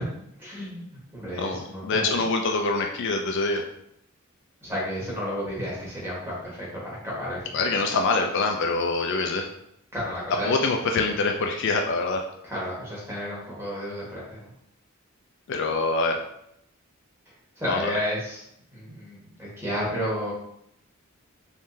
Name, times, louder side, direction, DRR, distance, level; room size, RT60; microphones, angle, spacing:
voice 1, 0.4-0.8 1.1-2.1 4.6-7.8 9.9-10.6 12.4-14.5 17.6-18.4 18.7-20.3, equal, 10° right, -7 dB, 1.3 m, -32 dB
voice 2, 1.4-3.6 7.5-9.5 10.4-12.2 15.5-16.2 17.7-17.9, left 3 dB, 55° left, 3 dB, 0.3 m, -25 dB
3.6 x 3.1 x 2.7 m, 0.75 s
head